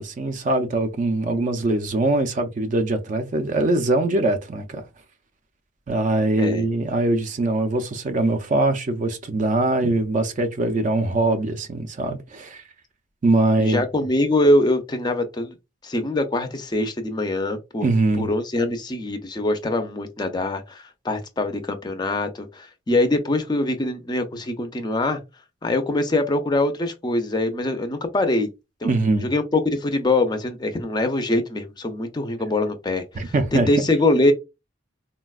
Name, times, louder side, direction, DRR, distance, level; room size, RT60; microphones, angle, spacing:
voice 1, 0.0-4.8 5.9-12.6 13.2-13.8 17.8-18.3 28.8-29.3 33.1-33.7, right 2 dB, 40° right, 0.4 m, -22 dB
voice 2, 13.6-15.5 15.8-17.9 18.2-25.2 25.6-28.5 28.8-34.3, left 2 dB, 20° left, 0.4 m, -23 dB
3.9 x 2.1 x 2.3 m
head